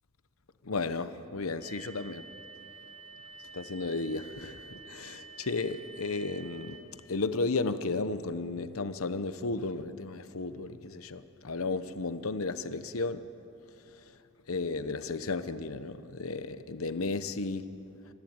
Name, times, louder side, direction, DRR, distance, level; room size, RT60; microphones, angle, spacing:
voice 1, 0.7-2.2 3.5-4.6 4.9-6.8 7.1-13.2 14.5-17.7, left 3 dB, 90° left, 11 dB, 1.0 m, -33 dB
sound 1, 1.6-6.8, right 4 dB, 25° right, 4.3 m, -49 dB
27.5 x 15.0 x 8.9 m, 2.8 s
head